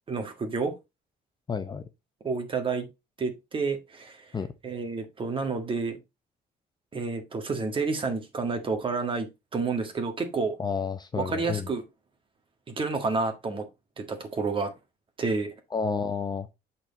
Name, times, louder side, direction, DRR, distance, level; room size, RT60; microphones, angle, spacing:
voice 1, 0.1-0.7 2.2-2.9 3.2-4.4 4.6-6.0 6.9-10.5 11.1-11.8 12.7-13.7 14.0-14.7 15.2-15.5, right 4 dB, 30° right, 1.8 m, -30 dB
voice 2, 1.5-1.8 4.3-4.5 10.6-11.7 15.7-16.5, left 5 dB, 25° left, 0.7 m, -30 dB
7.9 x 4.4 x 3.9 m
cardioid pair, 110°, 17 cm